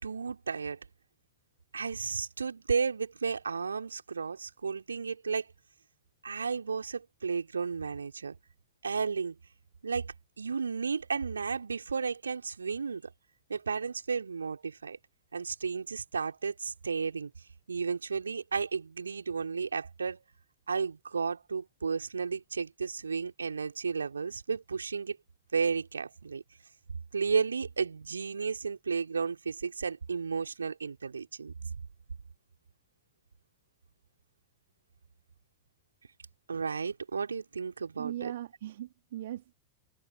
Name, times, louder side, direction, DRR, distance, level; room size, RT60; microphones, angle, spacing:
voice 1, 0.0-0.8 1.7-5.5 6.2-8.4 8.8-9.4 9.8-13.1 13.5-15.0 15.3-17.3 17.7-20.2 20.7-25.2 25.5-26.4 27.1-31.5 36.5-38.3, right 5 dB, 75° right, 3.6 m, -33 dB
voice 2, 38.0-39.5, right 13 dB, 60° right, 2.1 m, -39 dB
figure-of-eight pair, 90°, 0 cm